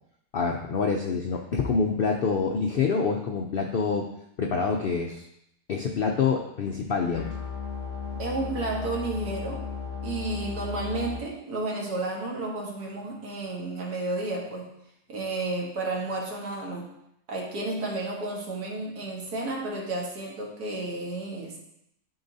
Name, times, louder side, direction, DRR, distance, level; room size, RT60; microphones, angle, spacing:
voice 1, 0.3-4.1 4.4-5.2 5.7-7.3, left 5 dB, 90° left, 2 dB, 0.5 m, -26 dB
sound 1, 7.1-11.2, left 6 dB, 15° right, 1.0 m, -35 dB
voice 2, 8.2-9.7 10.0-14.7 15.1-16.9 17.3-21.6, right 2 dB, 80° right, -1 dB, 1.9 m, -32 dB
11.5 x 3.9 x 2.7 m, 0.79 s
omnidirectional pair, 1.6 m